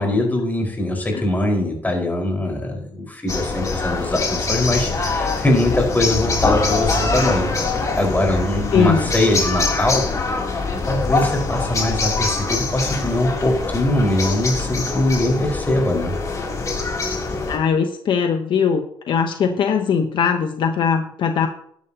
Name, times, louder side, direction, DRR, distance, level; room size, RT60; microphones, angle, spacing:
voice 1, 0.0-7.6 7.9-10.0 10.8-16.1, left 1 dB, 20° left, 1 dB, 5.0 m, -22 dB
sound 1, 3.3-17.6, left 3 dB, 40° left, 3.2 m, -23 dB
voice 2, 8.7-9.1 17.5-21.5, left 6 dB, 65° left, 5 dB, 1.0 m, -20 dB
12.5 x 11.0 x 2.9 m, 0.67 s
cardioid pair, 80°, 9 cm